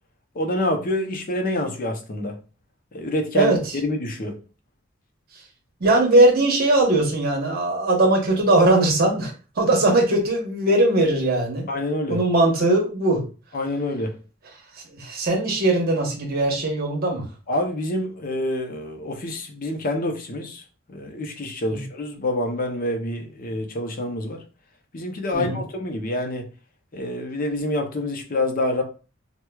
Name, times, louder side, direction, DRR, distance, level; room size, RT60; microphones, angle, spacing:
voice 1, 0.3-2.4 2.9-4.4 11.7-12.2 13.5-14.2 17.5-20.6 20.9-24.4 24.9-26.5 26.9-28.8, left 1 dB, 45° left, 0.6 m, -27 dB
voice 2, 5.8-11.7 12.1-13.2 14.9-17.3 21.7-21.8 25.3-25.6, right 2 dB, 50° right, 1.0 m, -20 dB
4.5 x 2.2 x 2.3 m
head